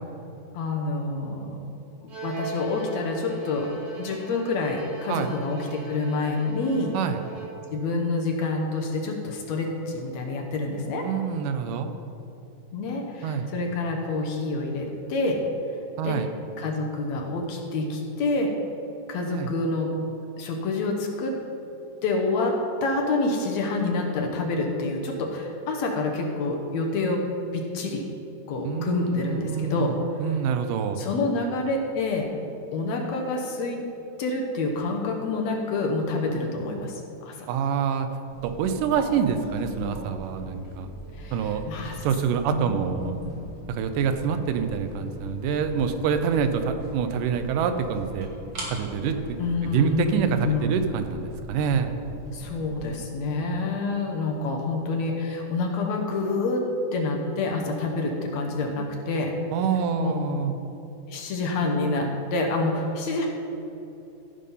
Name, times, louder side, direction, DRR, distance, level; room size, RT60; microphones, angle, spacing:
voice 1, 0.5-1.6 2.2-3.7 4.0-7.0 7.7-11.1 12.7-15.4 16.0-16.2 16.6-18.5 19.1-19.9 20.4-21.4 22.0-27.2 27.5-28.0 28.5-30.1 31.0-32.3 32.7-33.9 34.2-37.5 41.2-42.0 42.5-43.3 49.4-50.8 52.3-59.3 60.0-60.1 61.1-63.3, left 3 dB, 65° left, 1 dB, 2.1 m, -27 dB
Bowed string instrument, 2.1-7.8, right 2 dB, 65° right, 3.2 m, -40 dB
voice 2, 11.0-11.9 13.2-13.5 16.0-16.3 19.3-19.5 28.6-29.9 30.2-31.0 37.5-38.1 38.4-40.9 41.3-41.6 42.0-43.1 43.7-48.3 48.7-49.2 49.6-51.9 59.5-60.6, right 7 dB, 85° right, 8 dB, 2.3 m, -26 dB
sound 1, 38.3-52.9, equal, 35° right, 2.1 m, -41 dB
15.0 x 5.4 x 5.5 m, 3.0 s
omnidirectional pair, 3.6 m